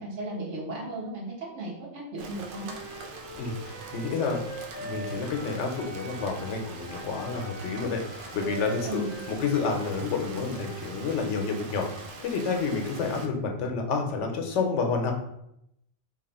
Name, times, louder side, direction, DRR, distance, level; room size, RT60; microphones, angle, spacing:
voice 1, 0.0-2.7 8.9-9.2, right 1 dB, 80° right, -5 dB, 1.5 m, -35 dB
Rain, 2.2-13.3, right 3 dB, 60° right, 0.6 m, -43 dB
Wind instrument woodwind instrument, 2.5-6.6 6.8-11.0, right 1 dB, 40° left, 1.1 m, -43 dB
voice 2, 3.4-4.4 4.8-9.0 9.3-11.9 12.2-15.1, left 4 dB, 85° left, 3 dB, 1.0 m, -29 dB
3.1 x 2.4 x 4.0 m, 0.78 s
omnidirectional pair, 1.2 m